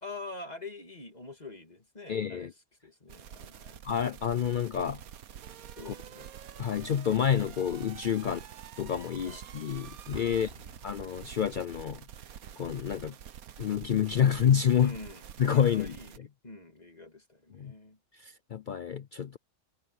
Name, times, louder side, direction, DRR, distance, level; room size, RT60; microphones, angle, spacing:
voice 1, 0.0-2.5 2.8-3.8 5.8-6.3 8.2-8.4 9.2-9.4 10.3-10.7 14.8-15.2 15.5-16.1 16.4-18.0, left 2 dB, 30° left, 2.7 m, -45 dB
voice 2, 2.1-2.5 3.8-5.0 5.9-6.0 6.6-8.4 8.8-10.5 10.8-12.0 12.6-13.1 13.6-15.0 15.4-16.3 17.5-17.7 18.1-19.4, left 8 dB, 80° left, 0.4 m, -28 dB
sound 1, 3.1-16.2, right 9 dB, 80° right, 1.4 m, -47 dB
Explosion, 10.1-11.9, right 1 dB, 55° right, 5.9 m, -49 dB
omnidirectional pair, 1.5 m